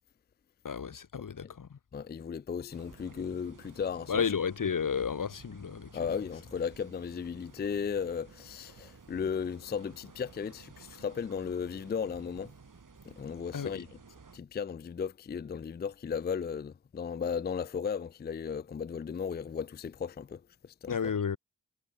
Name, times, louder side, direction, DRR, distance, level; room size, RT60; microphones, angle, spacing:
voice 1, 0.6-1.8 4.1-6.2 13.5-13.8 20.9-21.4, left 6 dB, 80° left, 1.2 m, -32 dB
voice 2, 1.9-4.2 5.9-12.5 13.1-13.9 14.3-21.0, left 6 dB, 30° left, 0.4 m, -35 dB
sound 1, 2.7-14.4, right 5 dB, 75° right, 3.5 m, -55 dB
wide cardioid pair, 65°, 32 cm